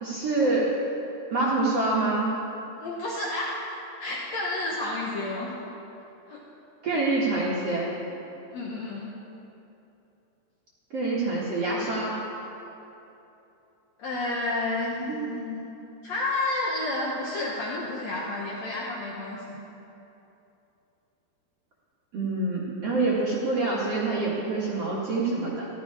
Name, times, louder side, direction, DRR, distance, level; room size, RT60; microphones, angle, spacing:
voice 1, 0.0-0.7 1.3-2.3 6.8-7.9 10.9-12.2 15.1-15.2 22.1-25.7, right 2 dB, 55° right, -6 dB, 1.9 m, -26 dB
voice 2, 2.8-3.6 4.0-5.5 6.3-6.4 8.5-9.2 14.0-15.7 16.0-19.6, left 2 dB, 85° left, -3 dB, 1.5 m, -30 dB
15.5 x 13.0 x 4.9 m, 2.9 s
omnidirectional pair, 5.0 m